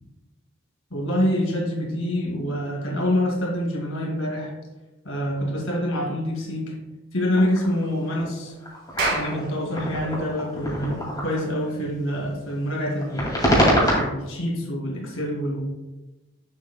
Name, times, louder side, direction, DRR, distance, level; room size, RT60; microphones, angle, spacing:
voice 1, 0.9-4.5 5.1-6.8 7.1-8.5 9.1-13.5 14.0-15.6, equal, 70° left, 0 dB, 2.1 m, -26 dB
sound 1, 7.3-11.6 12.9-14.0, equal, 20° left, 2.2 m, -24 dB
Clapping, 9.0-13.6, right 2 dB, 50° right, 2.1 m, -33 dB
8.4 x 7.3 x 2.2 m, 1.0 s
head